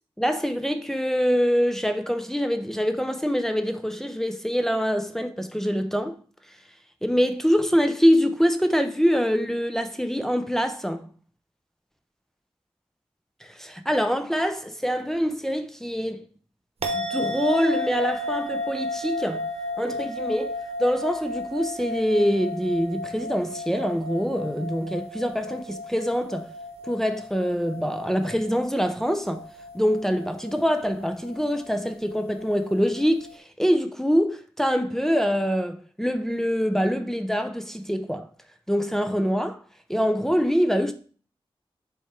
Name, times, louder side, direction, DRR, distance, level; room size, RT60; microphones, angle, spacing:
voice 1, 0.2-6.2 7.0-11.1 13.4-16.2 16.9-19.5 19.8-26.5 26.8-29.4 29.7-38.3 38.7-39.6 39.9-40.9, equal, 5° left, 0.5 m, -24 dB
sound 1, 16.8-33.3, left 1 dB, 85° right, 1.0 m, -34 dB
7.1 x 3.6 x 4.5 m
wide cardioid pair, 100°, 10 cm